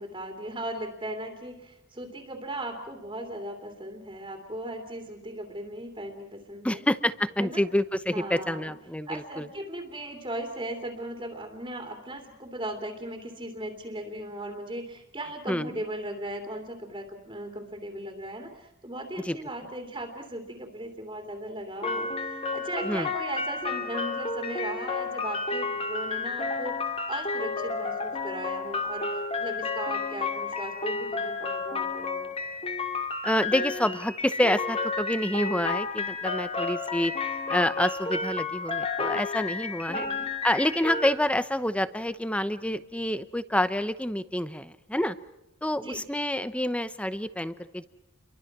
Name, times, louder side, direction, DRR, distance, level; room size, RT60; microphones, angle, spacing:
voice 1, 0.0-6.8 7.4-7.6 8.1-8.7 9.1-26.8 27.1-32.3 39.9-40.3 45.7-46.0, right 1 dB, 20° right, 2 dB, 2.9 m, -37 dB
voice 2, 6.6-9.5 15.5-15.7 19.2-19.4 22.8-23.1 33.2-40.1 40.4-45.1 45.6-47.9, left 1 dB, 5° left, 13 dB, 0.8 m, -28 dB
sound 1, 21.8-41.1, left 4 dB, 30° left, 2.6 m, -31 dB
30.0 x 23.5 x 6.0 m, 0.95 s
head